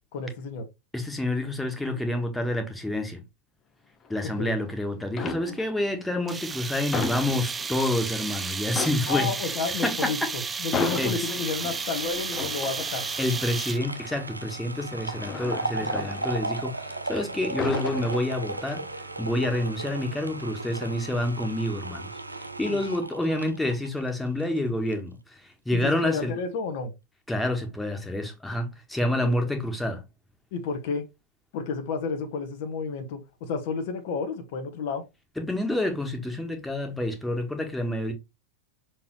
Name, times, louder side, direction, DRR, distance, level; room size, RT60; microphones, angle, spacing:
voice 1, 0.1-0.6 4.3-4.6 9.0-13.1 22.7-22.8 25.7-26.9 29.2-29.4 30.5-31.1 31.5-35.0, left 4 dB, 50° left, 1.4 m, -31 dB
voice 2, 0.9-3.2 4.1-9.3 9.8-10.1 11.0-11.3 13.2-18.9 19.2-25.4 25.7-26.3 27.3-30.0 35.4-38.1, left 1 dB, 5° left, 1.7 m, -28 dB
sound 1, 4.0-4.7 5.1-5.9 6.3-8.0 8.3-8.4 8.7-17.0 17.3-18.8 19.2-19.5, left 5 dB, 25° left, 0.9 m, -36 dB
sound 2, 6.3-14.0, right 5 dB, 15° right, 0.6 m, -33 dB
sound 3, 11.3-24.6 24.9-25.0, right 2 dB, 85° right, 0.8 m, -36 dB
6.6 x 4.5 x 3.1 m
figure-of-eight pair, 90°, 0 cm